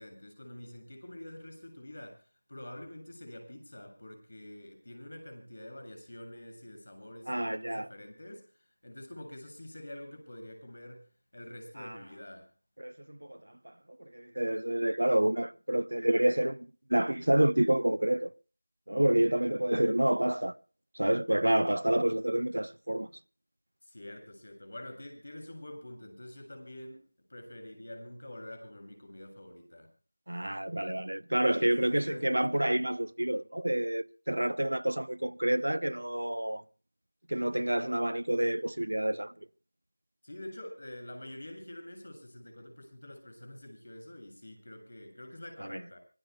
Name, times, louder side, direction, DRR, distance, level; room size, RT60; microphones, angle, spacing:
voice 1, 0.0-8.5 8.8-11.1 11.3-12.5 23.8-29.9 31.4-32.3 40.2-46.0, left 1 dB, 65° left, 7.8 m, -46 dB
voice 2, 7.3-7.9 11.8-12.0 12.8-18.3 18.9-20.5 20.9-23.1 30.3-36.6 37.3-39.5 45.6-45.8, right 1 dB, 85° right, 0.7 m, -28 dB
25.0 x 20.5 x 2.3 m
figure-of-eight pair, 170°, 0 cm